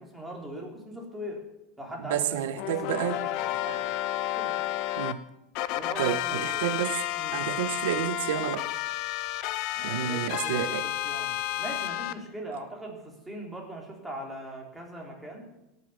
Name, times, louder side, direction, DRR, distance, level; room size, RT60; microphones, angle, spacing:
voice 1, 0.0-1.4 1.8-3.9 4.4-4.5 5.7-6.8 7.2-7.4 9.7-15.5, right 1 dB, 5° right, -1 dB, 3.2 m, -41 dB
voice 2, 2.0-3.2 5.0-5.2 6.0-7.0 7.3-8.7 9.8-10.9, right 11 dB, 85° right, 11 dB, 0.8 m, -30 dB
sound 1, 2.6-5.1 5.6-12.1, left 14 dB, 55° left, 0.7 m, -31 dB
17.5 x 6.6 x 6.7 m, 0.93 s
supercardioid pair, 140°, 0 cm